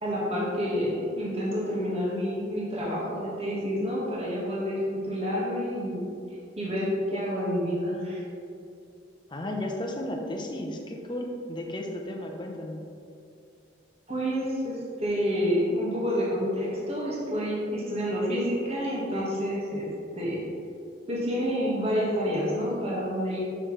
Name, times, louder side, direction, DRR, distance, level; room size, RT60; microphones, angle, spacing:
voice 1, 0.0-6.0 6.6-8.2 14.1-19.9 20.1-20.4 21.1-23.4, equal, 35° right, -6 dB, 1.7 m, -28 dB
voice 2, 9.3-12.8, left 1 dB, 25° left, 1 dB, 0.8 m, -34 dB
7.8 x 6.3 x 3.3 m, 2.5 s
head